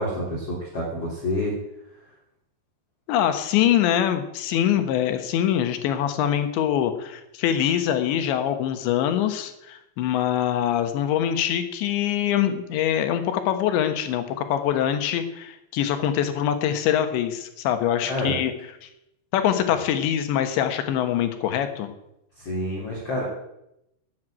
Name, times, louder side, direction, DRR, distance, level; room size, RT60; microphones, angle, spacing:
voice 1, 0.0-1.6 18.0-18.3 22.4-23.2, left 1 dB, 35° left, -5 dB, 3.6 m, -28 dB
voice 2, 3.1-18.5 18.8-18.9 19.3-21.9, left 10 dB, 75° left, 8 dB, 3.4 m, -24 dB
12.5 x 9.4 x 9.1 m, 0.84 s
omnidirectional pair, 5.4 m